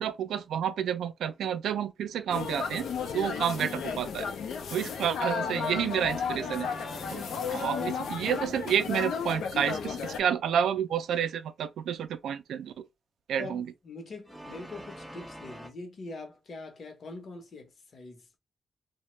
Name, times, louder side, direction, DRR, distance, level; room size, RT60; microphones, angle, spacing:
voice 1, 0.0-2.9 3.1-4.3 4.7-6.7 7.1-7.2 7.5-12.7 13.3-13.7, right 8 dB, 90° right, 0.3 m, -30 dB
sound 1, 2.3-10.2, left 6 dB, 90° left, 0.5 m, -34 dB
sound 2, 5.4-8.7 14.3-15.7, equal, ahead, 0.3 m, -46 dB
voice 2, 13.4-18.4, left 2 dB, 45° left, 0.8 m, -43 dB
2.8 x 2.1 x 3.0 m
wide cardioid pair, 170°, 0 cm